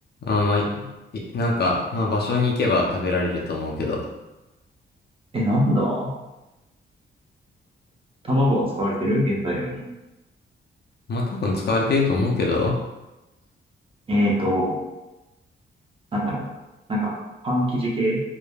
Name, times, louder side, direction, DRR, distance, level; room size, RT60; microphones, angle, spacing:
voice 1, 0.2-0.9 1.1-4.0 11.1-12.8, left 3 dB, 50° left, -1 dB, 0.5 m, -23 dB
voice 2, 5.3-6.1 8.2-9.8 14.1-14.8 16.1-16.4 16.9-17.1 17.4-18.2, equal, 25° right, -4 dB, 0.6 m, -22 dB
3.2 x 2.1 x 2.2 m, 1.0 s
wide cardioid pair, 125°, 21 cm